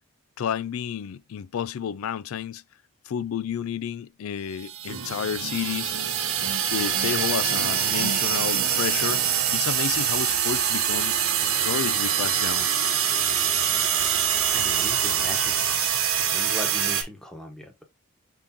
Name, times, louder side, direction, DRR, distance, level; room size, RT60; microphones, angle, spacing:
voice 1, 0.4-2.6 3.1-5.9 6.7-11.2 11.4-12.7, left 8 dB, 70° left, 0.3 m, -31 dB
sound 1, 4.6-17.0, right 8 dB, 65° right, 1.1 m, -24 dB
sound 2, 4.9-10.3, right 4 dB, 90° right, 0.6 m, -40 dB
voice 2, 14.5-15.9 16.3-17.8, left 1 dB, 5° left, 1.0 m, -39 dB
5.1 x 3.7 x 2.7 m
head